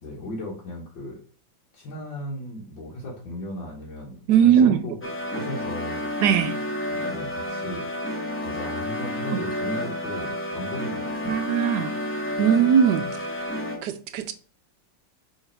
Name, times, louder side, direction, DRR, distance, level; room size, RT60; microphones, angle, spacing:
voice 1, 0.0-1.2 1.7-4.9 5.3-6.1 6.9-7.9 8.4-11.4, left 1 dB, 85° left, 2.2 m, -36 dB
voice 2, 4.3-4.8 6.2-6.6 11.2-11.9 12.4-13.1 13.4-13.5 13.8-14.3, right 8 dB, 70° right, 1.1 m, -19 dB
sound 1, 5.0-13.8, left 1 dB, 10° left, 0.7 m, -30 dB
5.7 x 3.9 x 4.4 m
omnidirectional pair, 2.0 m